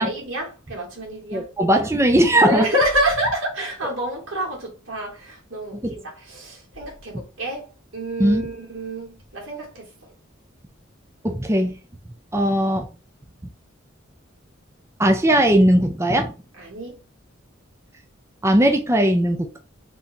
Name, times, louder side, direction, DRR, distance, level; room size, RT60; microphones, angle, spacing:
voice 1, 0.0-1.5 2.3-9.9 16.6-17.0, right 1 dB, 85° right, 2.2 m, -28 dB
voice 2, 1.3-2.7 5.8-5.9 8.2-8.4 11.2-11.7 12.3-12.9 15.0-16.3 18.4-19.6, right 1 dB, 15° right, 0.5 m, -18 dB
3.7 x 2.7 x 4.4 m
head